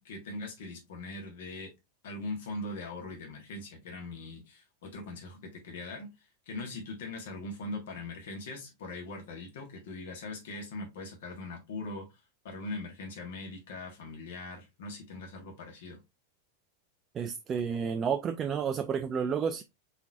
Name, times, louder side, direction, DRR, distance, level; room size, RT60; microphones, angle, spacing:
voice 1, 0.0-1.7 2.0-6.1 6.5-12.0 12.4-16.0, left 2 dB, 55° left, 1.4 m, -41 dB
voice 2, 17.1-19.6, right 7 dB, 25° right, 0.3 m, -31 dB
4.3 x 3.6 x 2.4 m
figure-of-eight pair, 90°, 0 cm